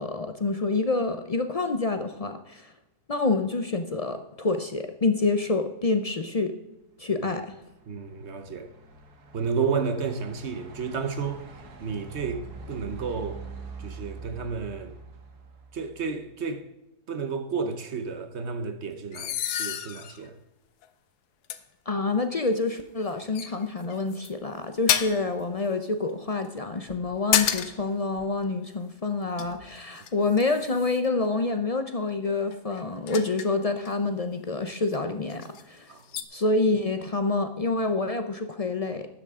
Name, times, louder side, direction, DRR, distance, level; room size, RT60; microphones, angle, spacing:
voice 1, 0.0-2.7 3.1-6.5 7.0-7.5 21.9-35.9 36.3-39.1, left 3 dB, 55° left, 0.4 m, -27 dB
Truck, 7.0-16.4, right 4 dB, 90° right, 1.9 m, -45 dB
voice 2, 7.9-8.7 9.3-11.5 11.8-13.4 13.8-14.9 15.7-16.6 17.1-20.4 35.9-36.1, right 5 dB, 50° right, 1.0 m, -31 dB
sound 1, 19.1-20.3 20.8-20.9 21.5-21.6 22.8-23.0 23.3-24.3 24.9-25.3 26.9-27.9 28.2-28.3 29.1-31.1 32.5-33.9 34.9-35.0 35.3-35.6 36.1-36.2, left 10 dB, 85° left, 1.3 m, -30 dB
12.5 x 9.8 x 3.7 m
omnidirectional pair, 1.6 m